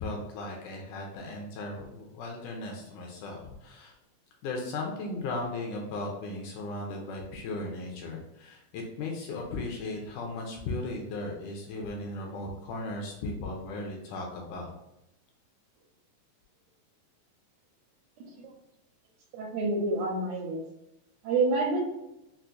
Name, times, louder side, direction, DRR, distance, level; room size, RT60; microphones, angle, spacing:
voice 1, 0.0-3.9 4.4-14.7, left 2 dB, 80° left, 0 dB, 1.9 m, -36 dB
voice 2, 19.3-20.6 21.2-21.8, right 3 dB, 80° right, -1 dB, 1.8 m, -28 dB
5.6 x 2.1 x 2.5 m, 0.87 s
omnidirectional pair, 3.9 m